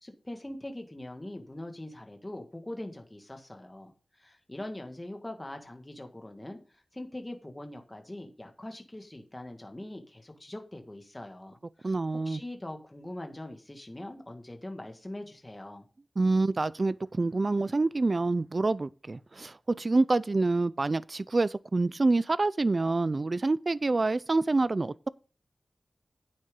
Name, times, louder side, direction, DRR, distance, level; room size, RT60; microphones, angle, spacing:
voice 1, 0.0-15.8, left 1 dB, 15° left, 1.7 m, -42 dB
voice 2, 11.8-12.4 16.2-24.9, right 3 dB, 40° right, 0.4 m, -27 dB
9.5 x 8.7 x 3.7 m
wide cardioid pair, 115°, 0 cm